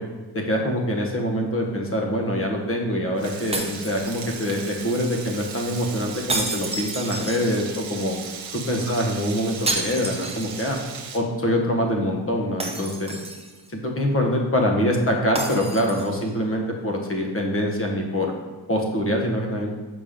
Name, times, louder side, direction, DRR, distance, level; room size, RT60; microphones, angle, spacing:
voice 1, 0.3-8.2 8.7-10.8 11.1-13.2 13.7-18.3 18.7-19.7, equal, 30° left, 1 dB, 1.3 m, -24 dB
Frying (food), 3.2-11.2, right 6 dB, 75° right, 1.1 m, -37 dB
sound 1, 3.5-4.6 6.3-7.9 9.7-10.9 11.2-11.3 12.6-13.7 15.3-16.3, right 2 dB, 15° right, 0.9 m, -30 dB
6.9 x 5.3 x 3.7 m, 1.3 s
cardioid pair, 105°, 47 cm